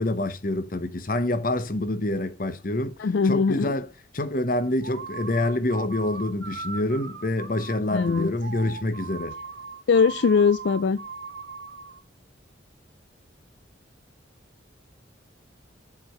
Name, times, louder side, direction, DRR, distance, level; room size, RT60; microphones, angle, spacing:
voice 1, 0.0-3.0 3.2-3.9 4.1-9.4, left 1 dB, 45° left, 0.9 m, -26 dB
voice 2, 3.0-3.8 7.9-8.3 9.9-11.0, left 5 dB, 65° left, 0.4 m, -21 dB
sound 1, 4.8-12.0, right 5 dB, 65° right, 1.1 m, -39 dB
7.6 x 4.7 x 6.5 m
head